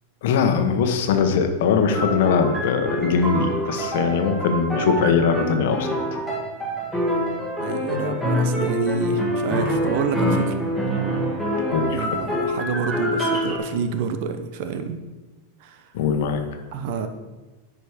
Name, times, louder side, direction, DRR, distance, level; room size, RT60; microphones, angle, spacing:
voice 1, 0.2-6.2 11.7-12.1 15.9-16.6, left 6 dB, 65° left, 6 dB, 1.1 m, -21 dB
sound 1, 1.8-13.6, equal, ahead, 2.0 m, -25 dB
voice 2, 7.6-10.6 11.9-15.0 15.6-15.9 16.7-17.1, right 6 dB, 55° right, 9 dB, 0.8 m, -28 dB
9.4 x 5.1 x 5.1 m, 1.2 s
supercardioid pair, 140°, 0 cm